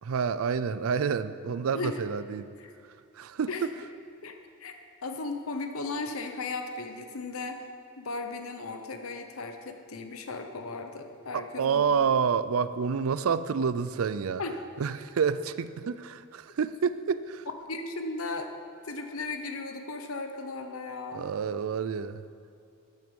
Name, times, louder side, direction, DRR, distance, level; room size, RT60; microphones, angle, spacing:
voice 1, 0.0-2.5 3.1-3.7 11.3-14.4 14.8-17.5 21.1-22.3, right 6 dB, 75° right, 14 dB, 0.4 m, -28 dB
voice 2, 4.2-4.7 5.0-7.7 8.0-11.8 14.4-14.5 17.7-18.5 18.8-21.2, left 3 dB, 75° left, 6 dB, 0.9 m, -36 dB
13.0 x 9.1 x 5.3 m, 2.4 s
head